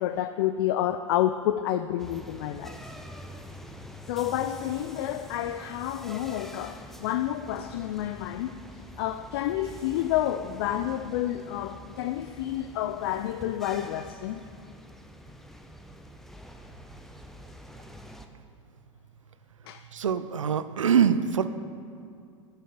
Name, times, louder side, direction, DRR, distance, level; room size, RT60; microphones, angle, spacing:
voice 1, 0.0-2.9 4.1-14.4 19.7-19.8, left 12 dB, 50° left, 10 dB, 0.4 m, -29 dB
sound 1, 2.0-18.3, equal, ahead, 0.6 m, -46 dB
voice 2, 19.9-21.5, right 7 dB, 75° right, 12 dB, 0.5 m, -24 dB
10.0 x 6.4 x 7.4 m, 2.4 s
figure-of-eight pair, 85°, 17 cm